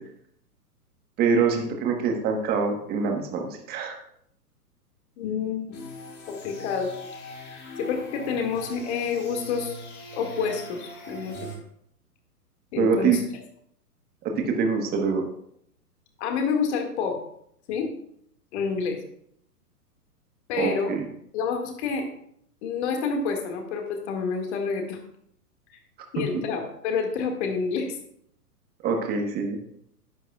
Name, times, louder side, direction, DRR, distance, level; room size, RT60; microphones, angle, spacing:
voice 1, 1.2-4.0 12.8-13.2 14.2-15.2 20.5-21.1 26.3-26.4 28.8-29.6, right 5 dB, 20° right, 3 dB, 1.2 m, -24 dB
voice 2, 5.2-5.8 6.3-6.9 7.8-9.7 10.1-11.5 12.7-13.2 16.2-17.2 17.7-17.9 18.5-19.0 20.5-20.9 21.3-22.1 22.6-25.0 26.1-28.0, left 5 dB, 45° left, 3 dB, 2.0 m, -28 dB
sound 1, 5.7-11.6, equal, 20° left, 1.4 m, -41 dB
11.5 x 8.7 x 2.3 m, 0.70 s
hypercardioid pair, 130°, 47 cm